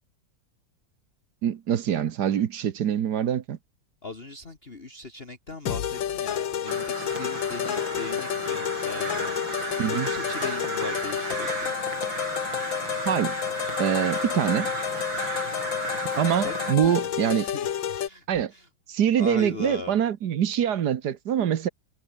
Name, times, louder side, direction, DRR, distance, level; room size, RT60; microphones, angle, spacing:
voice 1, 1.4-3.6 9.8-10.1 13.0-13.4 13.8-14.7 16.2-17.5 18.3-18.5 18.9-21.7, right 9 dB, 60° right, 1.6 m, -24 dB
voice 2, 4.0-9.4 9.9-11.8 16.4-16.5 16.8-17.1 17.4-18.2 18.5-18.7 19.2-20.0, left 3 dB, 30° left, 2.2 m, -39 dB
sound 1, 5.7-18.1, left 9 dB, 75° left, 2.0 m, -30 dB
Crow, 6.7-16.8, right 3 dB, 80° right, 5.5 m, -34 dB
omnidirectional pair, 2.1 m